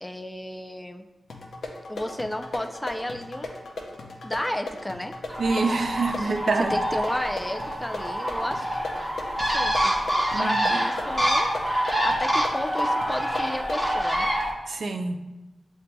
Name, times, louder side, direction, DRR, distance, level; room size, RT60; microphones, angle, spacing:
voice 1, 0.0-1.0 1.9-3.5 4.2-5.1 6.2-6.3 6.7-8.7 9.4-9.9 10.4-11.5 12.0-14.3, left 1 dB, 15° left, 6 dB, 0.4 m, -32 dB
sound 1, 1.3-13.9, left 2 dB, 90° left, 0.6 m, -38 dB
Bird, 5.3-14.5, equal, 15° right, 1.0 m, -26 dB
voice 2, 5.4-6.8 10.3-10.6 14.7-15.2, right 3 dB, 70° right, 6 dB, 0.4 m, -26 dB
7.5 x 2.6 x 2.2 m, 1.1 s
cardioid pair, 65°, 0 cm